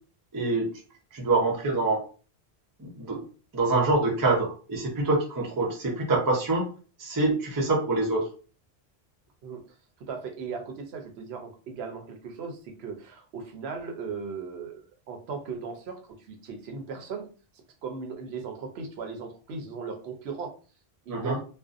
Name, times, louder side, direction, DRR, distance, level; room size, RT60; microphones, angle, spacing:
voice 1, 0.3-0.7 1.1-2.0 2.8-3.2 3.5-6.6 7.0-8.3 21.1-21.4, right 2 dB, 30° right, 1 dB, 0.4 m, -25 dB
voice 2, 10.0-17.3 17.8-20.5 21.1-21.4, right 5 dB, 75° right, 5 dB, 0.8 m, -37 dB
2.5 x 2.0 x 2.4 m, 0.37 s
omnidirectional pair, 1.1 m